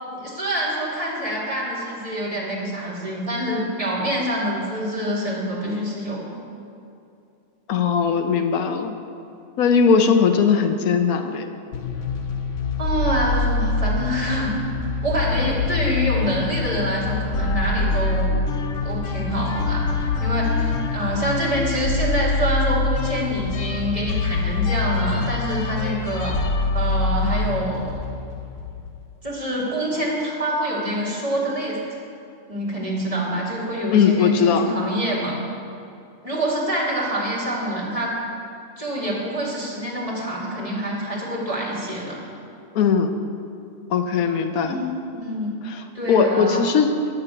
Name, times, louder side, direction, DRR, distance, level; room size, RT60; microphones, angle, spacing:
voice 1, 0.1-6.4 12.8-14.5 15.0-18.3 18.8-26.4 26.7-28.0 29.2-31.8 32.5-35.4 36.2-38.2 38.8-42.2 44.6-45.6 45.9-46.7, equal, 25° right, -5 dB, 2.5 m, -26 dB
voice 2, 7.7-9.0 9.6-11.5 33.9-34.7 42.7-43.2 43.9-44.8 45.6-47.0, left 6 dB, 85° left, 7 dB, 1.2 m, -19 dB
sound 1, 11.7-29.0, left 3 dB, 60° left, 1.1 m, -25 dB
9.7 x 6.8 x 8.2 m, 2.6 s
omnidirectional pair, 1.5 m